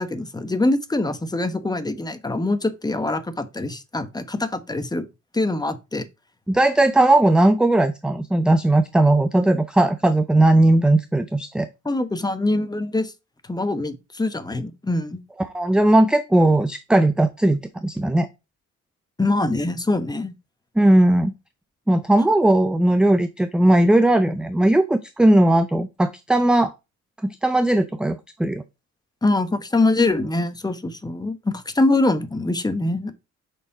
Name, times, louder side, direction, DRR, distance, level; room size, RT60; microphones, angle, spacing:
voice 1, 0.0-5.0 5.3-6.0 11.8-13.1 13.4-15.2 19.2-20.3 29.2-33.1, left 2 dB, 15° left, 0.9 m, -23 dB
voice 2, 6.5-11.7 15.5-18.3 20.8-21.3 21.9-26.7 27.2-28.6, right 1 dB, 5° right, 0.4 m, -18 dB
5.0 x 4.5 x 4.7 m
cardioid pair, 90°, 30 cm